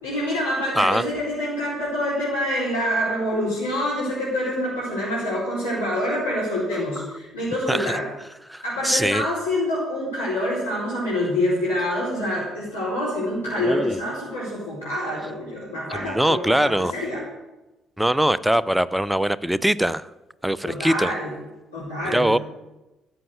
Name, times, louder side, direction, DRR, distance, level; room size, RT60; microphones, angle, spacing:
voice 1, 0.0-8.0 8.6-17.2 20.6-21.3 21.7-22.4, left 1 dB, 85° left, -9 dB, 4.4 m, -26 dB
voice 2, 8.5-9.2 13.6-14.0 15.9-16.9 18.0-20.1 20.4-21.1 22.1-22.4, right 1 dB, 5° right, 18 dB, 0.7 m, -22 dB
13.5 x 7.6 x 9.2 m, 1.0 s
figure-of-eight pair, 45°, 0 cm